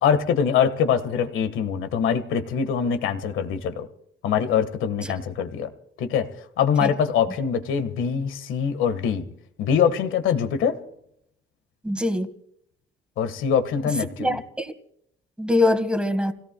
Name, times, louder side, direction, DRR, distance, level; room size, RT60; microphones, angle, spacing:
voice 1, 0.0-3.9 4.2-5.7 6.0-6.3 6.6-9.3 9.6-10.7 13.2-14.4, left 7 dB, 90° left, 10 dB, 1.6 m, -23 dB
voice 2, 11.8-12.3 14.2-14.7 15.4-16.3, left 2 dB, 5° right, 9 dB, 1.8 m, -23 dB
29.0 x 17.5 x 2.3 m, 0.71 s
cardioid pair, 90°, 20 cm